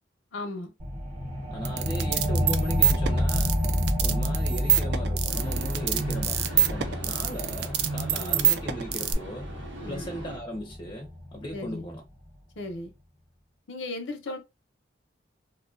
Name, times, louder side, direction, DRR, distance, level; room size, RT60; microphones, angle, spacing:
voice 1, 0.3-0.7 8.1-8.4 9.8-10.0 11.5-11.8 12.6-12.9 13.7-14.4, left 2 dB, 80° left, 0.6 m, -36 dB
sound 1, 0.8-11.9, left 1 dB, 35° right, 1.0 m, -30 dB
voice 2, 1.5-3.5 4.0-9.5 9.9-12.0, equal, 20° left, 0.4 m, -37 dB
sound 2, 1.6-9.1, right 10 dB, 60° right, 0.3 m, -26 dB
sound 3, 5.3-10.4, right 1 dB, 85° right, 0.8 m, -41 dB
2.4 x 2.3 x 2.4 m
head